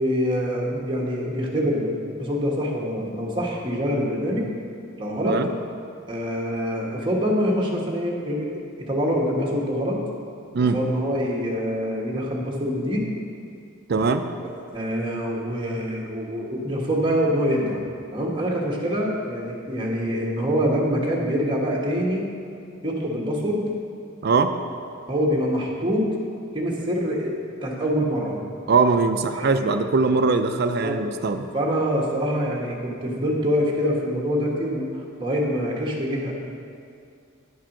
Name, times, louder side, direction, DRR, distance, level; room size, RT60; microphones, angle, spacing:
voice 1, 0.0-4.5 5.0-5.4 6.1-8.5 8.9-10.0 10.7-13.1 14.7-17.8 18.1-22.3 22.8-23.6 25.1-26.1 26.5-27.4 27.6-28.4 29.3-29.5 30.8-30.9 31.5-36.3, equal, 25° right, -3 dB, 1.3 m, -25 dB
voice 2, 13.9-14.3 24.2-24.5 28.7-31.5, right 4 dB, 50° right, 8 dB, 0.5 m, -21 dB
9.9 x 4.7 x 5.9 m, 2.4 s
head